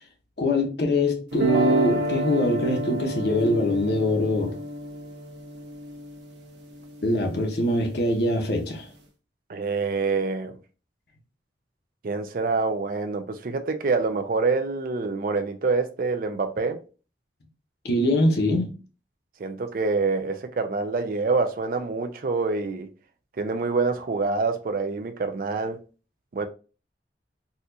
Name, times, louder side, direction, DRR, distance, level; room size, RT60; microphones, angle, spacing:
voice 1, 0.4-4.6 7.0-8.9 17.8-18.7, left 1 dB, 65° left, 0.9 m, -23 dB
sound 1, 1.3-7.4, equal, 80° right, 0.9 m, -30 dB
voice 2, 9.5-10.5 12.0-16.8 19.4-22.9 23.4-25.8 26.3-26.5, right 4 dB, 50° right, 0.4 m, -26 dB
4.1 x 2.3 x 2.7 m
head